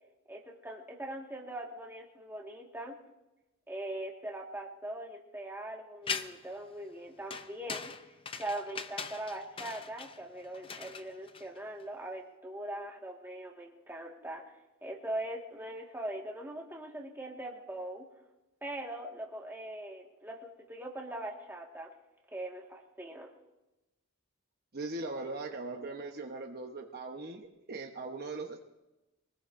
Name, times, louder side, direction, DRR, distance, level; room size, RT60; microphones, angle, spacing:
voice 1, 0.3-3.0 3.7-7.9 8.4-14.4 14.8-18.1 18.6-21.9 22.3-23.3, right 1 dB, 10° right, -1 dB, 1.8 m, -41 dB
sound 1, 6.1-6.6 7.3-11.8, left 6 dB, 25° left, 0.5 m, -40 dB
voice 2, 24.7-28.6, right 3 dB, 45° right, 2 dB, 1.1 m, -40 dB
24.5 x 19.5 x 2.6 m, 1.0 s
head